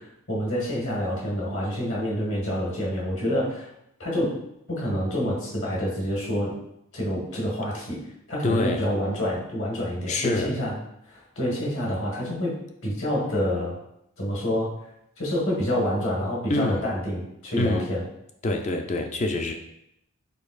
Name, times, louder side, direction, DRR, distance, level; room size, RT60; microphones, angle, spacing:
voice 1, 0.3-3.7 4.0-4.4 4.7-6.6 6.9-8.0 8.3-10.7 11.1-12.6 12.8-13.8 14.2-14.8 15.2-18.0, equal, 60° left, -4 dB, 1.5 m, -27 dB
voice 2, 8.4-8.8 10.1-10.5 16.5-16.9 17.6-17.9 18.4-19.5, left 2 dB, 30° left, 5 dB, 0.3 m, -26 dB
5.2 x 3.9 x 2.4 m, 0.78 s
head